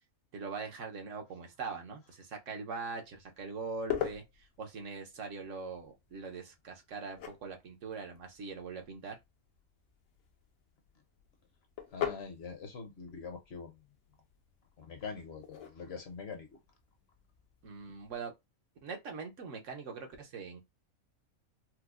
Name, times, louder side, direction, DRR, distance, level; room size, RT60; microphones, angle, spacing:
voice 1, 0.3-9.2 17.6-18.3 18.8-20.6, right 4 dB, 70° right, 1.1 m, -42 dB
sound 1, 3.0-18.2, left 9 dB, 80° left, 1.1 m, -45 dB
voice 2, 11.9-13.7 14.8-16.5, left 5 dB, 55° left, 0.9 m, -44 dB
4.5 x 2.1 x 2.4 m
omnidirectional pair, 1.4 m